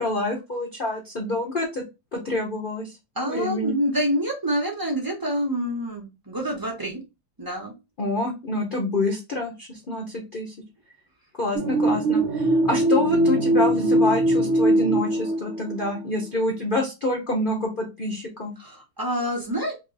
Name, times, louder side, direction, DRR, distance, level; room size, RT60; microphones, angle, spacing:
voice 1, 0.0-1.8 2.1-2.9 3.3-3.7 8.0-10.0 10.3-10.5 11.4-18.5, left 1 dB, 45° left, -1 dB, 0.6 m, -27 dB
voice 2, 3.2-7.0 7.4-7.7 18.6-19.7, equal, 30° right, 0 dB, 0.4 m, -27 dB
sound 1, 11.5-16.0, right 1 dB, 55° right, 0.8 m, -21 dB
3.0 x 2.9 x 3.8 m, 0.25 s
omnidirectional pair, 2.1 m